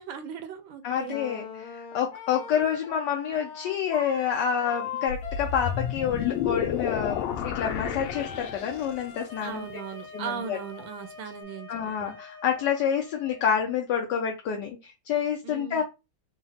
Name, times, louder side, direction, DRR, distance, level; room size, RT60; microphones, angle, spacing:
voice 1, 0.0-1.1 9.4-11.7 12.0-12.2 15.4-15.8, right 7 dB, 75° right, 1.3 m, -37 dB
voice 2, 0.8-9.7 10.1-10.6 11.7-15.8, left 8 dB, 70° left, 1.1 m, -28 dB
Wind instrument woodwind instrument, 1.1-13.6, left 5 dB, 55° left, 1.6 m, -42 dB
sound 1, 5.1-9.1, left 8 dB, 85° left, 1.4 m, -30 dB
3.8 x 2.2 x 4.1 m
omnidirectional pair, 2.3 m